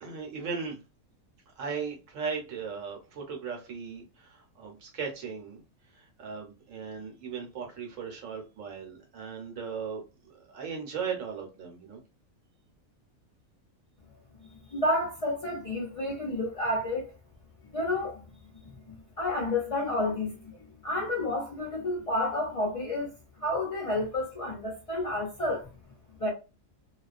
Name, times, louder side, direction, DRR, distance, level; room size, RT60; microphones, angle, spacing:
voice 1, 0.0-0.8 1.6-5.6 5.9-10.0 10.5-12.0, right 6 dB, 70° right, 1.1 m, -37 dB
voice 2, 14.7-17.1 17.7-18.2 18.9-20.4 20.8-23.1 23.4-25.7 26.2-26.3, left 1 dB, 50° left, 0.4 m, -30 dB
2.4 x 2.2 x 2.4 m
omnidirectional pair, 1.4 m